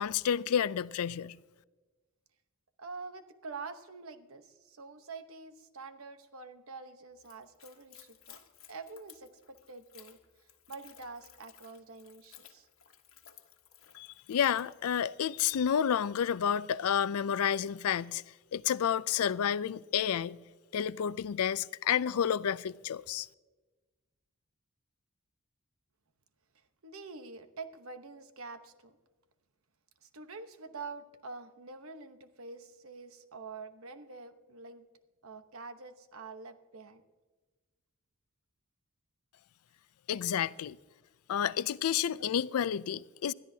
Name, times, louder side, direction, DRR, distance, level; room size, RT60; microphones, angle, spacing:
voice 1, 0.0-1.4 14.0-18.2 18.5-20.4 20.7-23.3 40.1-40.8 41.3-43.3, left 8 dB, 85° left, 0.4 m, -30 dB
voice 2, 2.8-8.4 8.7-12.7 26.8-29.0 30.0-34.8 35.2-37.0, right 4 dB, 70° right, 1.0 m, -46 dB
Splash splatter / Trickle dribble, 7.2-15.5, left 11 dB, 65° left, 1.3 m, -58 dB
20.5 x 13.5 x 2.8 m
head